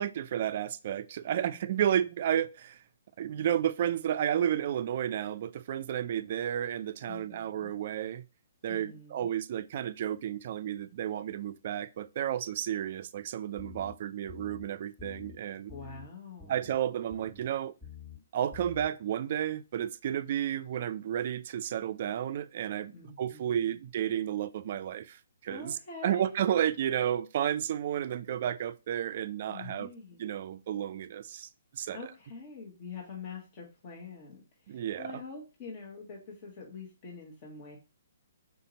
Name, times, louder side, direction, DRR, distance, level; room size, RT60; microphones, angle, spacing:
voice 1, 0.0-2.8 3.2-8.2 8.6-15.7 16.5-17.7 18.3-25.8 26.0-29.9 30.2-32.0 34.7-35.0, right 10 dB, 50° right, 0.3 m, -32 dB
voice 2, 1.5-1.8 7.0-7.7 8.7-9.3 15.7-16.7 22.9-23.8 25.5-26.4 29.5-30.2 31.9-37.8, left 4 dB, 40° left, 1.1 m, -45 dB
sound 1, 13.6-13.9 14.3-14.6 15.0-15.3 15.7-16.1 16.4-16.8 17.1-17.5 17.8-18.2 18.5-18.9, left 7 dB, 10° left, 1.3 m, -48 dB
3.9 x 2.8 x 3.9 m
hypercardioid pair, 135°, 0 cm